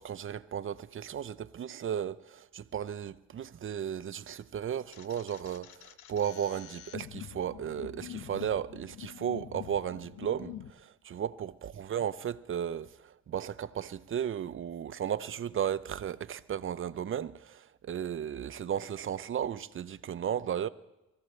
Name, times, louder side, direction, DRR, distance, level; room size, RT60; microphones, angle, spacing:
voice 1, 0.0-20.7, right 9 dB, 45° right, 0.7 m, -35 dB
sound 1, 4.9-10.7, left 11 dB, 75° left, 0.8 m, -46 dB
23.5 x 14.5 x 3.3 m
cardioid pair, 90°, 30 cm